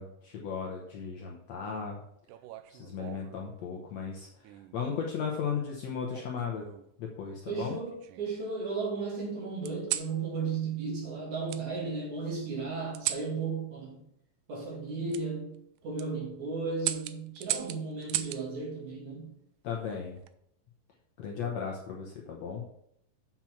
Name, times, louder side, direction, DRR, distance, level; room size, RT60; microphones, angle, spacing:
voice 1, 0.0-2.0 2.7-4.3 4.7-6.7 7.0-7.8 19.6-20.2 21.2-22.6, left 6 dB, 70° left, 0 dB, 1.7 m, -36 dB
sound 1, 2.3-3.4 4.4-4.8 6.1-6.9 7.5-8.4 9.6-10.1 11.5-11.6 12.9-13.3 15.1-15.2 15.8-16.1 16.8-18.4 19.9-20.3, right 13 dB, 80° right, 1.9 m, -36 dB
voice 2, 7.5-14.0 14.5-15.6 15.8-19.3, right 4 dB, 60° right, -3 dB, 3.8 m, -35 dB
7.6 x 5.9 x 5.9 m, 0.75 s
omnidirectional pair, 4.0 m